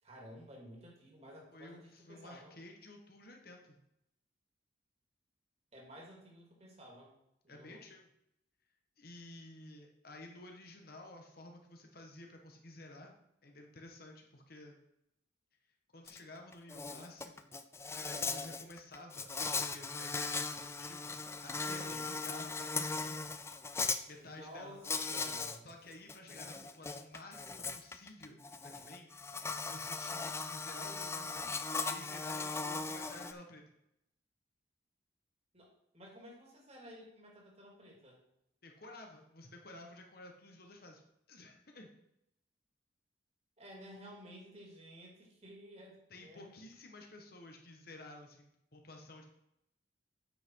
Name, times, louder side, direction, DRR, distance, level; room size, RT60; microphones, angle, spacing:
voice 1, 0.0-2.5 5.7-7.1 7.4-7.9 21.6-22.1 24.2-25.7 35.5-38.2 43.6-46.5, equal, 35° right, -1 dB, 2.7 m, -53 dB
voice 2, 1.5-3.8 7.5-8.0 9.0-13.1 13.4-14.8 15.9-17.5 18.0-23.3 24.1-24.8 25.6-33.6 38.6-41.0 41.3-41.9 46.1-49.3, left 2 dB, 55° left, 2 dB, 1.5 m, -52 dB
Insect, 16.1-16.2 16.5-24.0 24.8-25.6 25.9-33.3, left 4 dB, 15° left, 0.4 m, -38 dB
9.1 x 5.8 x 4.7 m, 0.81 s
head